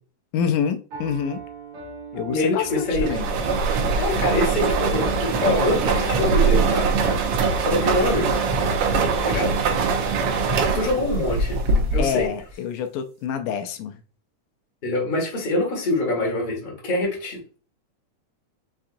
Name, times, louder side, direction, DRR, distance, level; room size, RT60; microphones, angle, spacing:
voice 1, 0.3-1.4 2.1-3.3 12.0-14.0, left 7 dB, 80° left, 2.0 m, -27 dB
Piano, 0.9-7.7, right 5 dB, 55° right, 1.9 m, -39 dB
voice 2, 2.3-3.2 3.9-6.9 7.6-8.4 9.2-9.5 10.7-11.6 11.9-12.3 14.8-17.4, left 2 dB, 25° left, 1.2 m, -24 dB
sound 1, 2.9-12.3, right 4 dB, 85° right, 1.3 m, -22 dB
5.7 x 3.6 x 2.6 m
omnidirectional pair, 3.7 m